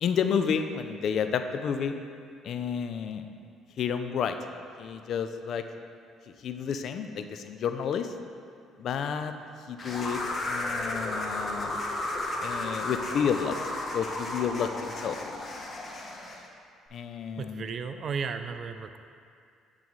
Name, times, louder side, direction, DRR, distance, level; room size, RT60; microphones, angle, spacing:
voice 1, 0.0-2.0 2.4-3.3 3.8-4.4 4.8-5.6 6.4-8.1 8.8-9.3 9.7-11.8 12.4-13.6 13.9-15.2 16.9-17.6, left 7 dB, 60° left, 8 dB, 0.4 m, -30 dB
sound 1, 9.8-16.5, left 2 dB, 40° left, 0.9 m, -33 dB
voice 2, 17.4-19.0, right 5 dB, 50° right, 8 dB, 0.3 m, -34 dB
10.5 x 3.8 x 3.1 m, 2.4 s
supercardioid pair, 75°, 0 cm